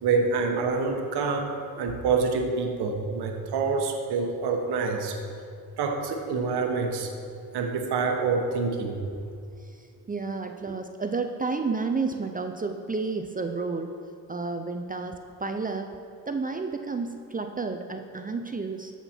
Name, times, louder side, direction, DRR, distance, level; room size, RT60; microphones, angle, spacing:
voice 1, 0.0-1.5 1.8-5.2 5.8-7.1 7.5-9.0, right 4 dB, 85° right, 3 dB, 1.2 m, -26 dB
voice 2, 9.6-14.0 14.3-15.9 16.3-18.9, right 4 dB, 20° right, 6 dB, 0.5 m, -31 dB
14.0 x 5.8 x 4.5 m, 2.3 s
cardioid pair, 85°, 38 cm